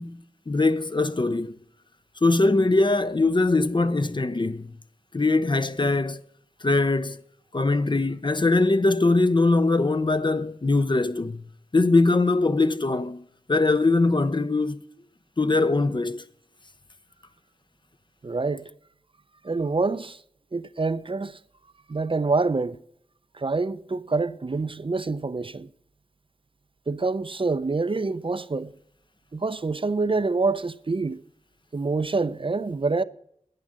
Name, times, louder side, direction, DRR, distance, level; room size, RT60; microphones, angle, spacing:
voice 1, 0.0-1.6 2.2-4.7 5.1-6.2 6.6-7.2 7.5-11.4 11.7-13.2 13.5-14.8 15.4-16.2, left 3 dB, 35° left, 0.6 m, -22 dB
voice 2, 18.2-18.7 19.4-20.2 20.5-21.4 21.9-22.8 23.3-25.7 26.9-28.7 29.3-31.2 31.7-33.0, right 3 dB, 40° right, 0.5 m, -26 dB
10.5 x 10.0 x 6.4 m
wide cardioid pair, 70°, 14 cm